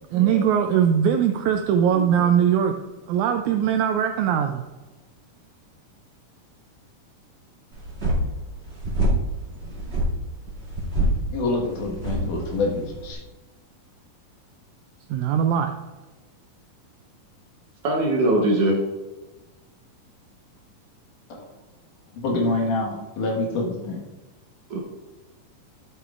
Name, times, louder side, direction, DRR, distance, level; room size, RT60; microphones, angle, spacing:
voice 1, 0.1-2.7 3.1-4.6 15.1-15.7, right 8 dB, 80° right, 5 dB, 1.8 m, -21 dB
voice 2, 1.9-2.3 17.8-18.8 24.7-24.8, right 1 dB, 60° right, 0 dB, 1.6 m, -22 dB
sound 1, 7.7-13.1, right 1 dB, 20° right, 2.0 m, -27 dB
voice 3, 11.3-13.2 21.3-21.5 22.1-24.0, left 2 dB, 75° left, -1 dB, 3.0 m, -26 dB
11.0 x 8.6 x 2.5 m, 1.2 s
omnidirectional pair, 3.7 m